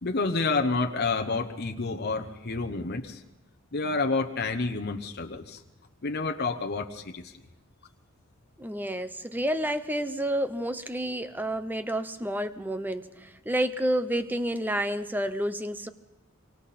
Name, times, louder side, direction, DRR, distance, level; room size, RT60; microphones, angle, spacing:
voice 1, 0.0-3.2 3.7-5.6 6.0-7.3, left 3 dB, 50° left, 4 dB, 1.0 m, -29 dB
voice 2, 8.6-15.9, right 1 dB, 10° right, 11 dB, 0.8 m, -30 dB
26.5 x 24.5 x 4.3 m, 0.97 s
head